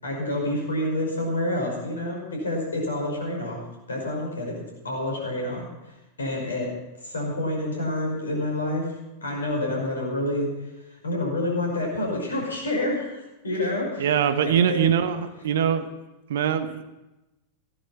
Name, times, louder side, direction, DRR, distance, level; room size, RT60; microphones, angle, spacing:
voice 1, 0.0-3.6 3.9-4.5 4.8-5.7 6.2-6.7 7.0-8.9 9.2-10.5 11.0-14.9, left 1 dB, 70° left, 0 dB, 5.5 m, -28 dB
voice 2, 14.0-15.9 16.3-16.8, right 8 dB, 60° right, 10 dB, 1.1 m, -23 dB
16.0 x 11.5 x 5.6 m, 1.0 s
figure-of-eight pair, 90°, 0 cm